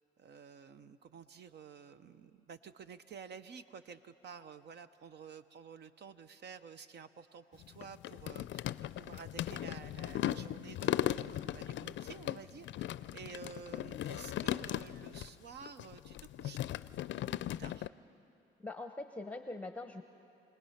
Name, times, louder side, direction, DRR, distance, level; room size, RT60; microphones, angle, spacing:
voice 1, 0.2-16.8 17.4-17.9, right 6 dB, 60° right, 12 dB, 0.7 m, -51 dB
sound 1, 7.5-15.3 15.6-17.9, left 13 dB, 70° left, 0.4 m, -38 dB
voice 2, 18.6-20.0, left 2 dB, 5° left, 6 dB, 0.8 m, -43 dB
28.5 x 19.5 x 5.8 m, 2.8 s
cardioid pair, 90°, 20 cm